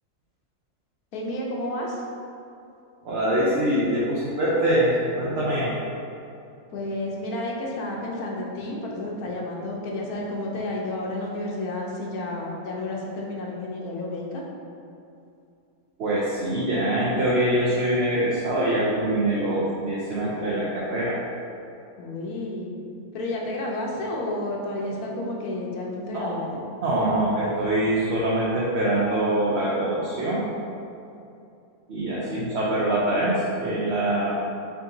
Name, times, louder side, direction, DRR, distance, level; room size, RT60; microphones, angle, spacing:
voice 1, 1.1-2.0 6.7-14.4 22.0-22.7 23.1-26.6 32.1-32.6, left 1 dB, 90° left, -2 dB, 1.2 m, -31 dB
voice 2, 3.0-5.7 16.0-21.2 26.1-26.3 26.8-30.5 31.9-34.4, right 1 dB, 60° right, -6 dB, 0.8 m, -24 dB
4.8 x 2.7 x 3.8 m, 2.6 s
omnidirectional pair, 1.5 m